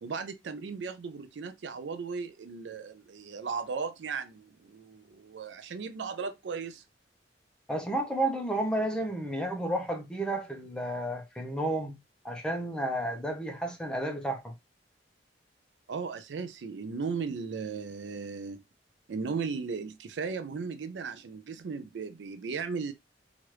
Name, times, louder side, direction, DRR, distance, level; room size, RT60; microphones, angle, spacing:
voice 1, 0.0-6.8 15.9-18.6 19.1-22.9, right 5 dB, 70° right, 0.4 m, -36 dB
voice 2, 7.7-12.0 12.2-14.5, right 1 dB, 5° left, 0.7 m, -31 dB
3.0 x 2.5 x 3.1 m
head